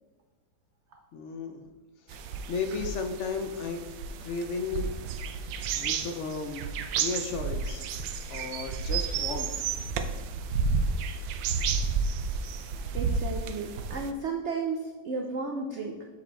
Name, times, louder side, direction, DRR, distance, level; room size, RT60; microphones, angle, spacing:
voice 1, 1.1-1.7 2.1-2.2 2.5-3.8 4.2-5.0 5.7-6.6 7.0-7.9 8.3-9.5, left 4 dB, 75° left, 6 dB, 0.6 m, -34 dB
sound 1, 2.1-14.1, right 5 dB, 85° right, 1.3 m, -31 dB
voice 2, 12.9-16.1, right 4 dB, 65° right, 2 dB, 0.7 m, -33 dB
7.8 x 4.8 x 4.0 m, 1.3 s
omnidirectional pair, 1.9 m